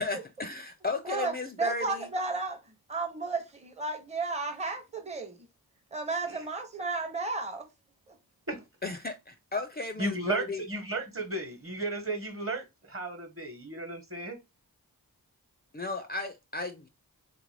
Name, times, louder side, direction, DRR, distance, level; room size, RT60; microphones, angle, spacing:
voice 1, 0.0-2.1 8.8-10.6 15.7-16.9, left 3 dB, 25° left, 0.4 m, -35 dB
voice 2, 1.6-2.6 2.9-5.5 5.9-7.7 8.1-8.2, right 3 dB, 20° right, 0.6 m, -33 dB
voice 3, 10.0-14.4, right 2 dB, 35° right, 1.1 m, -34 dB
3.4 x 2.5 x 3.2 m
wide cardioid pair, 60°, 38 cm